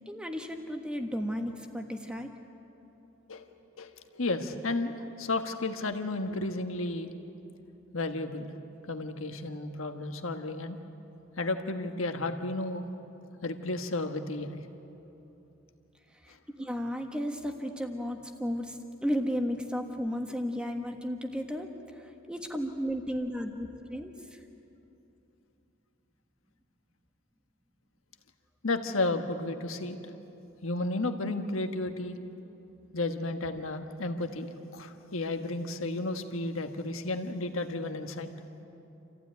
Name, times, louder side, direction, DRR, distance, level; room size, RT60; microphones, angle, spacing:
voice 1, 0.1-2.3 16.1-24.4, equal, 5° right, 4 dB, 1.4 m, -34 dB
voice 2, 3.8-7.1 7.9-8.5 8.9-10.8 11.4-12.9 13.4-14.6 28.6-30.0 30.6-32.2 32.9-38.3, left 2 dB, 75° left, 6 dB, 1.5 m, -33 dB
28.0 x 15.5 x 9.4 m, 3.0 s
head